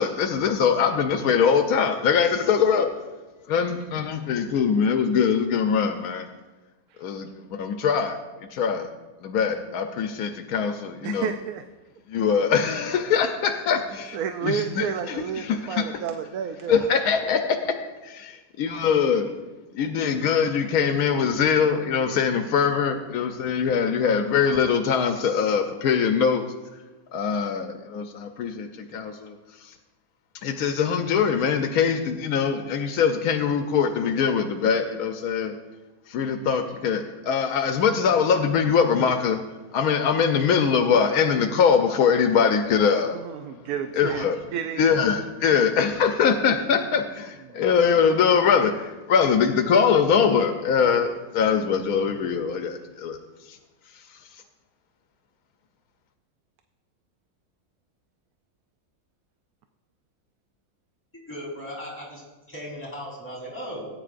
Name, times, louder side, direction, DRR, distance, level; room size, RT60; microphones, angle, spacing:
voice 1, 0.0-2.9 3.5-6.3 7.0-8.9 9.2-11.3 12.1-15.9 16.7-17.8 18.6-19.3 19.7-26.4 27.1-29.7 30.4-35.5 36.1-39.4 39.7-43.7 43.9-44.4 44.8-53.6 53.9-54.4, left 6 dB, 90° left, 6 dB, 1.2 m, -23 dB
voice 2, 11.0-11.6 14.1-16.9 43.1-44.2 44.5-44.9 45.5-45.6 47.5-47.6, right 8 dB, 80° right, 7 dB, 1.1 m, -31 dB
voice 3, 61.1-63.9, equal, 10° left, -6 dB, 3.6 m, -37 dB
18.0 x 9.3 x 2.5 m, 1.2 s
omnidirectional pair, 1.5 m